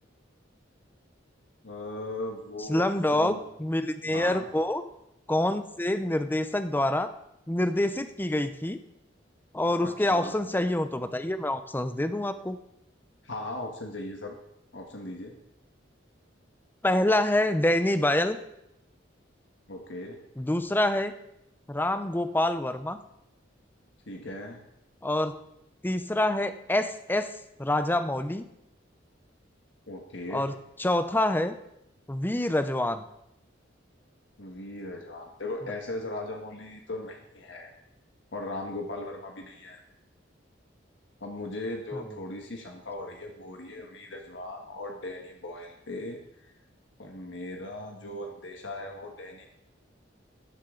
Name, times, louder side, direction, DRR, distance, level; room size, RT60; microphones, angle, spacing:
voice 1, 1.6-2.9 3.1-3.4 4.0-4.5 9.8-10.4 13.2-14.4 14.7-15.3 19.7-20.2 24.1-24.6 29.9-30.4 34.4-37.7 38.3-39.8 41.2-46.5 47.0-49.5, left 2 dB, 70° left, 2 dB, 1.5 m, -38 dB
voice 2, 2.7-3.3 3.6-4.8 5.3-7.1 7.5-8.8 9.5-12.6 16.8-18.4 20.4-21.1 21.7-23.0 25.0-25.3 25.8-27.3 27.6-28.4 30.3-30.5 30.8-31.5 32.1-33.0 41.9-42.0, left 1 dB, 10° left, 10 dB, 0.6 m, -26 dB
13.5 x 10.0 x 3.9 m, 0.81 s
head